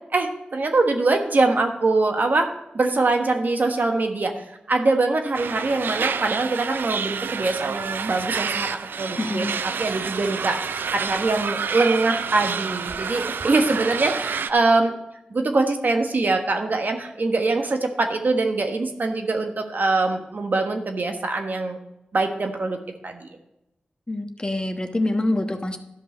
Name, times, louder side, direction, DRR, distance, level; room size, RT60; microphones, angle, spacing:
voice 1, 0.1-2.5 2.7-9.5 9.8-14.9 15.3-21.8 22.1-22.8 23.0-23.3, right 3 dB, 60° right, 4 dB, 1.3 m, -23 dB
sound 1, 5.3-14.5, right 6 dB, 85° right, 0.4 m, -29 dB
voice 2, 9.2-9.5 24.1-25.8, left 2 dB, 25° left, 5 dB, 1.2 m, -25 dB
12.5 x 5.4 x 4.4 m, 0.91 s
cardioid pair, 45°, 3 cm